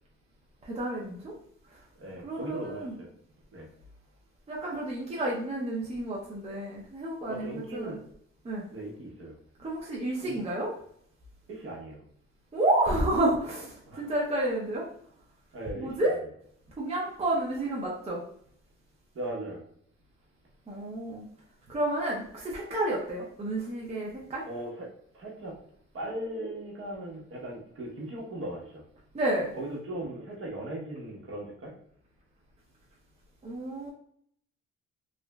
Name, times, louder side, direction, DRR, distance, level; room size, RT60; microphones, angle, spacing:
voice 1, 0.7-1.3 2.2-2.9 4.5-8.0 8.4-8.6 9.6-10.7 12.5-14.9 15.8-16.2 16.8-18.2 20.7-21.3 21.7-24.4 29.1-29.5 33.4-33.9, right 1 dB, 20° right, -4 dB, 0.6 m, -30 dB
voice 2, 2.0-3.1 3.5-3.7 5.1-5.3 7.3-8.0 8.7-9.4 10.2-10.4 11.5-12.0 13.9-14.2 15.5-15.9 19.1-19.6 24.4-24.9 25.1-25.5 25.9-28.8 29.6-31.7, right 1 dB, 45° right, -2 dB, 1.0 m, -38 dB
2.9 x 2.4 x 2.2 m, 0.65 s
cardioid pair, 90°, 30 cm